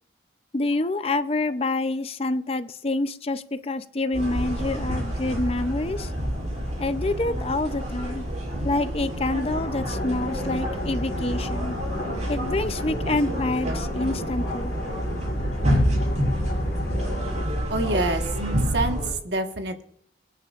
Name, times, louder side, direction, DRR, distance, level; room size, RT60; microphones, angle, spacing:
voice 1, 0.5-6.1 6.8-8.3 8.6-11.8 12.3-14.7, left 2 dB, 30° left, 11 dB, 0.5 m, -27 dB
sound 1, 4.1-19.1, equal, 40° right, 6.0 m, -28 dB
sound 2, 9.4-17.4, left 2 dB, 75° left, 1.7 m, -36 dB
voice 2, 17.7-18.2 18.7-19.8, right 2 dB, 65° right, 5 dB, 1.4 m, -26 dB
24.0 x 9.8 x 2.5 m, 0.66 s
head